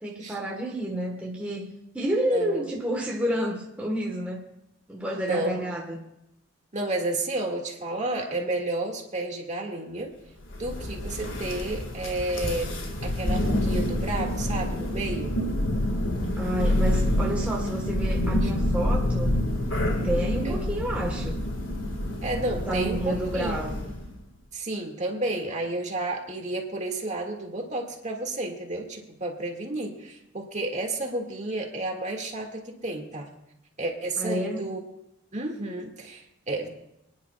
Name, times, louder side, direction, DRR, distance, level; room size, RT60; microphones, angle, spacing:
voice 1, 0.0-4.4 4.9-6.1 16.4-19.4 20.0-21.4 22.6-23.9 34.2-34.7, right 1 dB, 5° right, -2 dB, 1.3 m, -30 dB
voice 2, 5.2-5.6 6.7-10.1 10.6-12.7 13.0-15.3 18.4-18.5 20.4-20.6 22.2-23.7 24.5-33.3 33.8-34.8 35.3-36.7, right 2 dB, 40° right, 1 dB, 2.0 m, -31 dB
Thunder, 10.5-24.1, left 1 dB, 80° left, 1.9 m, -27 dB
27.5 x 10.5 x 2.4 m, 0.82 s
head